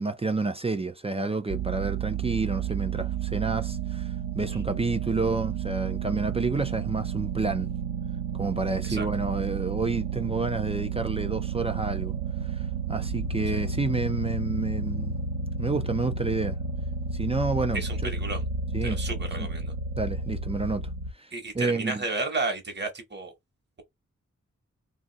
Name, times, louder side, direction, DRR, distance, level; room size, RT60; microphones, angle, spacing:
voice 1, 0.0-7.7 8.3-12.1 12.4-15.2 15.6-16.6 17.1-18.1 18.7-19.0 19.4-19.5 20.0-20.9 21.2-22.0, right 3 dB, 20° right, 0.3 m, -29 dB
sound 1, 1.5-21.1, right 5 dB, 70° right, 0.9 m, -31 dB
voice 2, 17.7-18.4 18.8-19.7 21.3-23.3, right 3 dB, 35° right, 1.0 m, -32 dB
2.5 x 2.4 x 3.9 m
wide cardioid pair, 90°, 29 cm